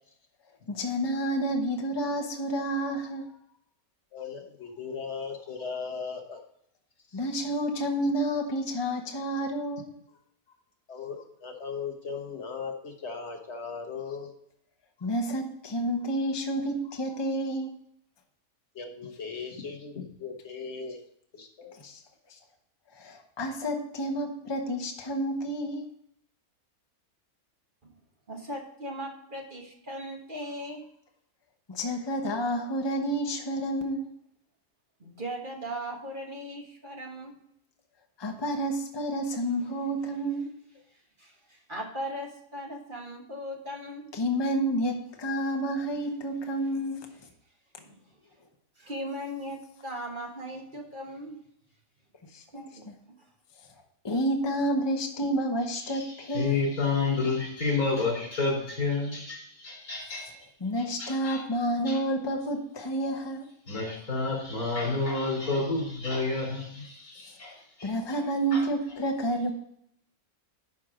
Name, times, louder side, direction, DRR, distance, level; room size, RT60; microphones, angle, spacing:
voice 1, 0.7-3.3 7.1-9.9 15.0-17.7 21.8-22.0 23.0-25.9 31.7-34.1 38.2-40.5 44.1-47.1 52.3-52.4 54.0-56.6 60.6-63.5 67.8-69.5, right 1 dB, 20° left, 3 dB, 1.0 m, -29 dB
voice 2, 4.1-6.4 7.1-7.2 10.9-14.3 18.8-21.0 21.3-21.7, left 5 dB, 50° left, 2 dB, 1.7 m, -38 dB
voice 3, 28.3-30.8 35.0-37.3 40.9-44.1 47.8-48.0 48.8-51.4 52.5-52.8, equal, 35° right, 0 dB, 1.6 m, -38 dB
voice 4, 55.7-60.3 60.8-61.4 61.9-62.0 63.7-68.2 68.5-68.7, left 3 dB, 90° left, -1 dB, 4.0 m, -30 dB
11.5 x 4.6 x 5.0 m, 0.72 s
omnidirectional pair, 1.5 m